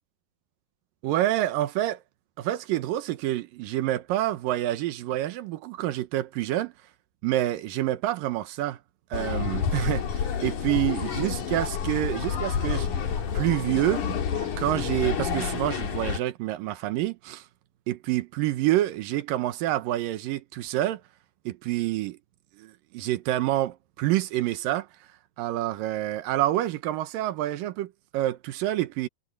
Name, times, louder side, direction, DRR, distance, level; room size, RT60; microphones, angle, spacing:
voice 1, 1.0-2.0 2.4-6.7 7.2-8.8 9.1-12.9 13.3-14.0 14.6-17.5 17.9-21.0 21.5-22.2 22.6-24.9 25.4-29.1, right 14 dB, 70° right, 2.4 m, -27 dB
sound 1, 9.1-16.2, left 7 dB, 55° left, 3.4 m, -29 dB
omnidirectional pair, 4.8 m